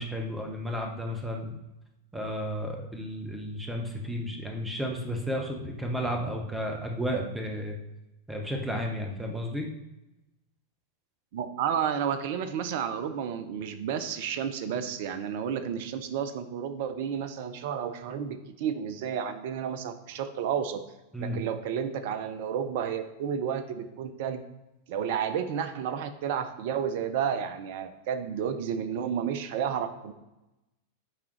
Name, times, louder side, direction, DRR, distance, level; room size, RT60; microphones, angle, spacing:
voice 1, 0.0-1.6 2.1-7.8 8.3-9.7 21.1-21.4, equal, 5° right, 1 dB, 0.9 m, -33 dB
voice 2, 11.3-20.8 21.2-24.4 24.9-30.1, right 8 dB, 50° right, 11 dB, 0.5 m, -31 dB
9.7 x 3.6 x 3.1 m, 0.96 s
figure-of-eight pair, 90°, 0 cm